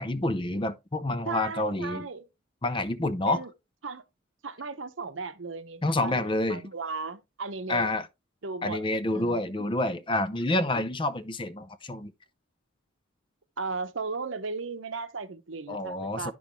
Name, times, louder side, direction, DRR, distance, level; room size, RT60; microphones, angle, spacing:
voice 1, 0.0-2.1 2.6-3.4 5.8-6.6 7.7-8.1 8.6-12.1 15.7-16.3, left 2 dB, 25° left, 0.6 m, -28 dB
voice 2, 1.3-2.3 3.3-3.5 3.8-4.0 4.4-7.9 8.4-8.8 9.1-9.5 13.6-16.3, right 4 dB, 75° right, 0.9 m, -36 dB
10.0 x 6.2 x 3.1 m
head